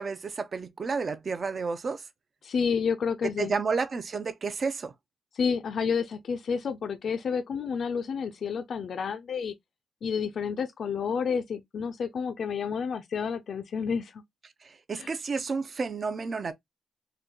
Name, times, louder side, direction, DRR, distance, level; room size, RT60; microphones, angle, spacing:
voice 1, 0.0-2.0 3.4-4.9 14.6-16.5, right 4 dB, 40° right, 0.4 m, -31 dB
voice 2, 2.4-3.5 5.3-9.5 10.0-14.2 15.0-15.1, left 6 dB, 55° left, 0.3 m, -30 dB
3.8 x 2.2 x 2.8 m
wide cardioid pair, 150°, 0 cm